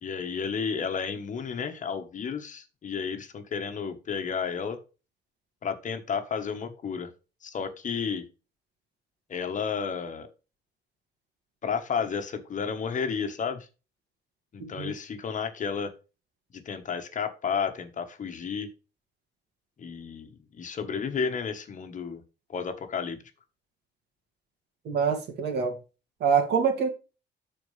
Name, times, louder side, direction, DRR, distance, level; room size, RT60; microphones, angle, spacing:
voice 1, 0.0-4.8 5.6-7.1 7.4-8.2 9.3-10.3 11.6-13.7 14.5-15.9 16.5-18.7 19.8-22.2 22.5-23.2, left 6 dB, 40° left, 1.3 m, -32 dB
voice 2, 14.6-14.9 24.8-25.8 26.2-26.9, right 6 dB, 65° right, 2.3 m, -25 dB
13.0 x 4.5 x 3.3 m
cardioid pair, 120°, 19 cm